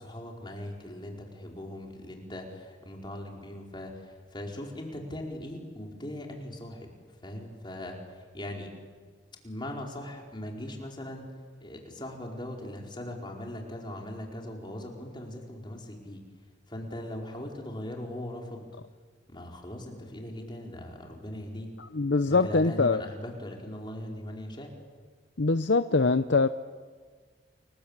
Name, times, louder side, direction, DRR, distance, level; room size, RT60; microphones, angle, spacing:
voice 1, 0.0-6.9 7.2-8.7 9.4-11.3 11.6-16.2 16.7-18.7 19.3-21.8 22.3-24.7, left 1 dB, 25° left, 0 dB, 4.8 m, -40 dB
voice 2, 21.9-23.0 25.4-26.5, left 3 dB, 65° left, 10 dB, 0.8 m, -23 dB
29.5 x 21.5 x 8.9 m, 1.5 s
head